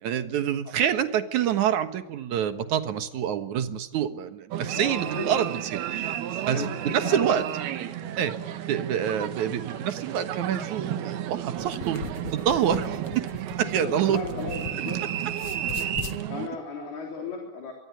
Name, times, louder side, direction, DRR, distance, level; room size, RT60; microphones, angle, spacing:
voice 1, 0.0-5.8 6.5-7.4 8.2-8.4 8.7-12.1 12.3-13.3 13.6-14.2, right 9 dB, 60° right, 9 dB, 2.5 m, -26 dB
sound 1, 4.5-16.5, right 11 dB, 85° right, 3.3 m, -32 dB
voice 2, 4.7-5.4 6.5-7.3 13.6-15.0 16.3-17.7, left 4 dB, 90° left, 1 dB, 5.6 m, -35 dB
sound 2, 11.5-15.0 15.3-16.2, left 6 dB, 75° left, 1.3 m, -39 dB
24.5 x 23.5 x 9.6 m, 0.88 s
omnidirectional pair, 4.3 m